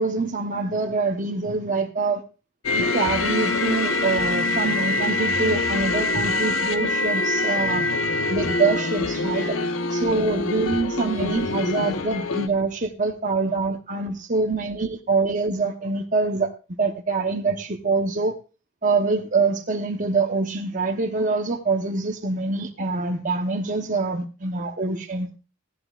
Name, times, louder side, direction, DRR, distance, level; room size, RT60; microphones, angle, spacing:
voice 1, 0.0-2.2 2.7-7.8 8.3-9.6 9.9-16.5 16.8-18.3 18.8-25.3, right 3 dB, 35° right, 2 dB, 1.0 m, -25 dB
sound 1, 2.6-12.5, left 2 dB, 75° left, 1.1 m, -24 dB
16.0 x 11.5 x 2.4 m, 0.34 s
head